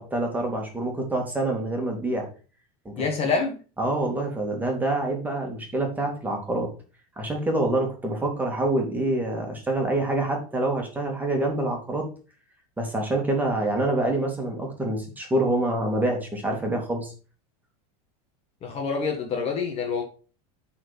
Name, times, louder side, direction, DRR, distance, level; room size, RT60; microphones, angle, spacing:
voice 1, 0.0-2.3 2.8-3.0 3.8-6.7 7.2-12.1 12.8-17.1, right 2 dB, 10° right, 1 dB, 2.4 m, -26 dB
voice 2, 3.0-3.6 18.6-20.0, left 5 dB, 35° left, 3 dB, 1.5 m, -26 dB
8.9 x 4.4 x 5.4 m, 0.37 s
supercardioid pair, 145°, 18 cm